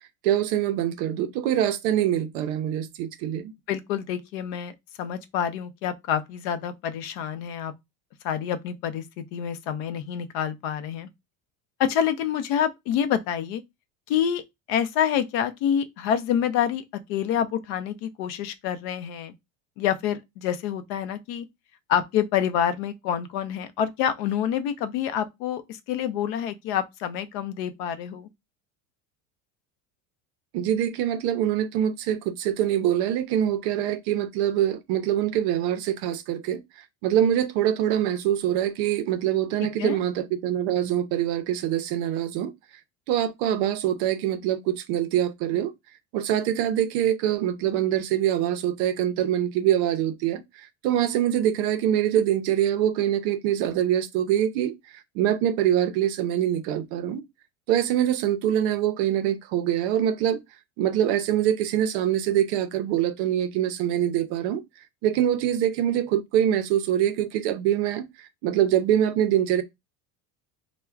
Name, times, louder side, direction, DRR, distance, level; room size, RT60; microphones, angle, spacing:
voice 1, 0.2-3.5 30.5-42.5 43.1-45.7 46.1-57.2 57.7-60.4 60.8-64.6 65.0-69.6, right 11 dB, 60° right, 0.5 m, -24 dB
voice 2, 3.7-4.7 5.0-7.7 8.2-11.1 11.8-13.6 14.1-14.4 14.7-16.8 17.1-19.3 19.8-21.5 21.9-28.3 39.8-40.0, left 9 dB, 60° left, 0.5 m, -27 dB
4.4 x 2.1 x 2.3 m
cardioid pair, 170°, 37 cm